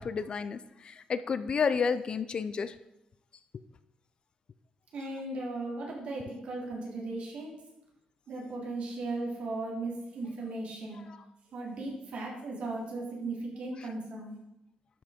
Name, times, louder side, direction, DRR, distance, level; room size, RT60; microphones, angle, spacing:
voice 1, 0.0-2.7, left 5 dB, 40° left, 13 dB, 0.4 m, -31 dB
voice 2, 4.9-7.5 8.3-11.0 11.5-14.4, right 2 dB, 55° right, -3 dB, 3.3 m, -37 dB
12.0 x 6.0 x 5.1 m, 0.88 s
cardioid pair, 150°, 2 cm